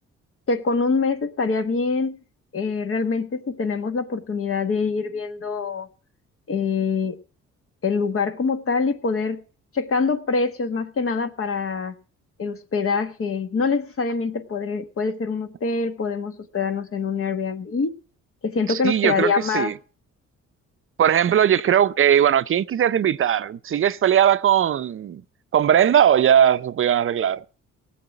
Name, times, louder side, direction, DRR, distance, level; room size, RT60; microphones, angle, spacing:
voice 1, 0.5-2.2 2.5-5.9 6.5-7.2 7.8-9.4 9.7-11.9 12.4-17.9 18.4-19.7, left 4 dB, 45° left, 1.4 m, -24 dB
voice 2, 18.7-19.7 21.0-25.2 25.5-27.4, right 9 dB, 45° right, 0.6 m, -19 dB
18.0 x 7.5 x 5.8 m
cardioid pair, 90°, 30 cm